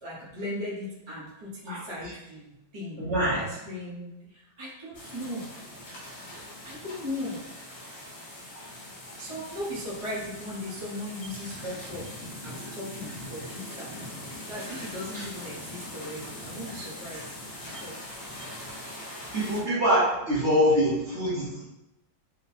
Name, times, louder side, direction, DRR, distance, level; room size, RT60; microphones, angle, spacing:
voice 1, 0.0-5.5 6.6-7.5 9.2-12.1 12.4-13.9 14.5-17.3 17.6-18.0 19.9-20.1, left 1 dB, 25° right, -7 dB, 0.7 m, -38 dB
voice 2, 3.0-3.4 15.1-15.2 19.3-21.6, equal, 45° right, -7 dB, 1.3 m, -24 dB
sound 1, 4.9-19.6, left 1 dB, 45° left, 1.1 m, -41 dB
4.4 x 2.3 x 4.2 m, 0.94 s
omnidirectional pair, 2.1 m